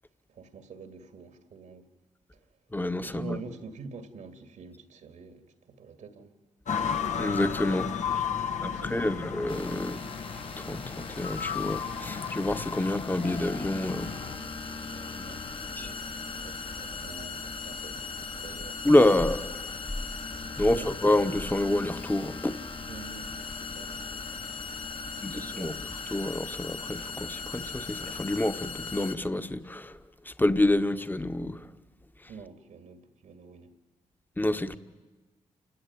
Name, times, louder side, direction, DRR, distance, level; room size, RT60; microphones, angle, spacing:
voice 1, 0.3-1.8 2.3-2.4 3.0-6.3 8.4-9.5 14.3-19.4 20.6-20.9 22.9-24.7 25.1-25.8 32.3-33.7, right 5 dB, 75° right, 2.1 m, -47 dB
voice 2, 2.7-3.4 7.2-7.9 8.6-10.0 10.6-14.1 15.8-15.9 18.8-19.5 20.6-22.6 25.2-25.7 26.1-29.9 30.3-31.6 34.4-34.8, left 1 dB, 15° left, 1.3 m, -27 dB
sound 1, 6.7-14.4, left 7 dB, 65° left, 1.5 m, -34 dB
sound 2, 9.5-29.2, left 4 dB, 45° left, 1.6 m, -39 dB
28.5 x 17.0 x 9.5 m
supercardioid pair, 50°, 13 cm